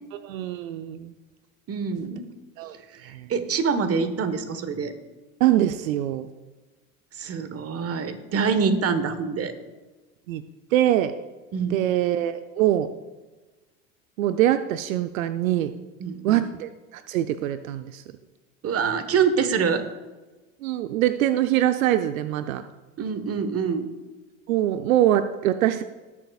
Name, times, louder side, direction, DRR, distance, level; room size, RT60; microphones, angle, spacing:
voice 1, 0.2-1.1 2.6-2.8 3.0-3.3 5.4-6.3 10.3-10.4 10.7-11.1 11.7-12.9 14.2-15.7 16.2-18.0 20.6-22.6 24.5-25.8, right 12 dB, 80° right, 10 dB, 0.6 m, -23 dB
voice 2, 1.7-2.3 2.9-4.9 7.1-9.5 11.5-11.8 16.0-16.5 18.6-19.8 23.0-23.9, right 5 dB, 35° right, 10 dB, 1.3 m, -25 dB
20.5 x 7.1 x 2.4 m, 1.2 s
hypercardioid pair, 80°, 41 cm